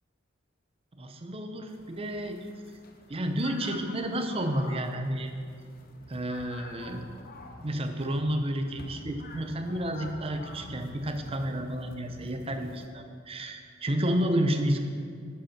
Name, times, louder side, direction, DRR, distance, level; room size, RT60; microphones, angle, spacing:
voice 1, 0.9-2.5 3.1-5.3 6.1-7.0 7.6-14.8, right 1 dB, 30° right, 6 dB, 0.6 m, -31 dB
sound 1, 1.7-12.9, left 2 dB, 50° left, 0.8 m, -47 dB
9.8 x 5.3 x 5.8 m, 2.2 s
head